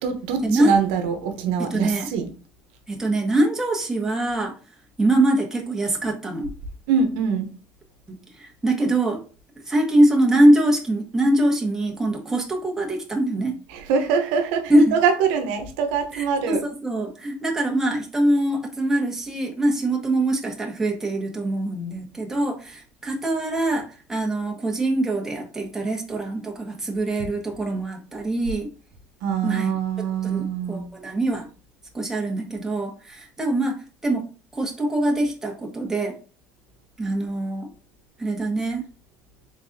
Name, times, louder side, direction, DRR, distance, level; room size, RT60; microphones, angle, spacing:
voice 1, 0.0-2.3 6.9-7.5 13.7-16.6 29.2-30.8, right 6 dB, 85° right, 0.9 m, -24 dB
voice 2, 1.6-2.1 2.9-4.5 5.0-6.5 8.1-9.2 9.7-13.6 14.7-14.9 16.1-28.7 29.4-29.7 30.0-31.5 31.9-33.8 34.0-34.2 34.5-36.1 37.0-37.7 38.2-38.8, right 1 dB, 10° right, 1.2 m, -23 dB
3.9 x 3.8 x 2.7 m
supercardioid pair, 115°, 5 cm